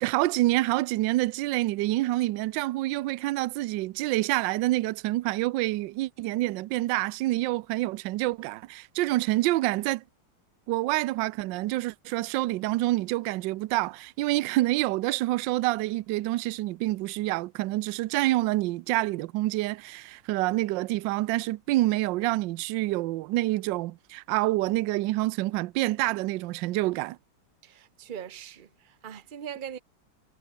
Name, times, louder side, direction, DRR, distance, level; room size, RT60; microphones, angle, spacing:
voice 1, 0.0-10.0 10.7-27.2, right 18 dB, 75° right, 1.1 m, -27 dB
voice 2, 27.6-29.8, right 9 dB, 50° right, 0.6 m, -41 dB
omnidirectional pair, 2.4 m